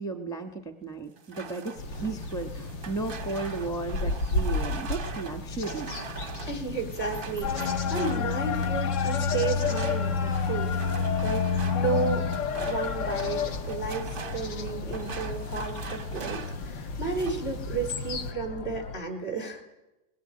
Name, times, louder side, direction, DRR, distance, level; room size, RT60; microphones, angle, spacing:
voice 1, 0.0-5.9, right 3 dB, ahead, 5 dB, 1.4 m, -34 dB
sound 1, 1.2-8.9 9.4-16.7 16.9-17.5, right 5 dB, 35° right, 1.0 m, -42 dB
sound 2, 1.8-18.3, left 4 dB, 90° left, 2.4 m, -32 dB
voice 2, 6.5-10.7 11.2-12.3 12.6-19.6, right 4 dB, 35° left, 4 dB, 4.3 m, -33 dB
sound 3, 7.4-19.0, left 7 dB, 50° left, 1.1 m, -34 dB
21.5 x 20.0 x 8.9 m, 1.0 s
omnidirectional pair, 2.0 m